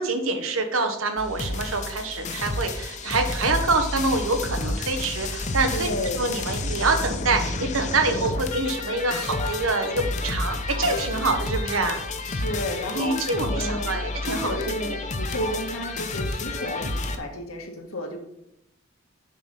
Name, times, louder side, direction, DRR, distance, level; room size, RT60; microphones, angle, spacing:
voice 1, 0.0-5.9 6.2-12.0 12.9-14.6 14.9-15.0, right 3 dB, 80° right, 6 dB, 1.2 m, -26 dB
sound 1, 1.2-17.2, left 2 dB, 35° left, 0.7 m, -30 dB
voice 2, 5.7-6.3 12.2-13.2 13.6-14.0 14.3-18.2, equal, 90° left, 1 dB, 1.8 m, -32 dB
7.3 x 5.0 x 5.8 m, 0.79 s
head